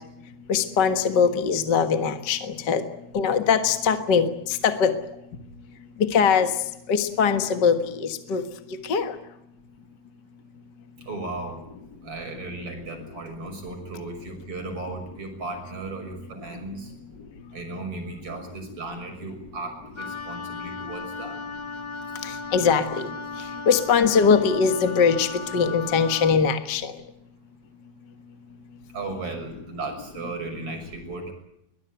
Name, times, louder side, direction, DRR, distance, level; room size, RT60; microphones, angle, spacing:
voice 1, 0.5-2.8 3.1-4.9 6.1-6.5 6.9-8.4 8.8-9.1 22.2-23.1 23.7-26.9, left 6 dB, 45° left, 8 dB, 1.8 m, -21 dB
voice 2, 11.1-11.6 12.0-16.9 17.5-21.4 28.9-31.3, right 3 dB, 50° right, 4 dB, 7.0 m, -35 dB
Wind instrument woodwind instrument, 20.0-26.4, left 4 dB, 25° left, 1.1 m, -36 dB
23.0 x 20.5 x 9.0 m, 0.81 s
omnidirectional pair, 3.4 m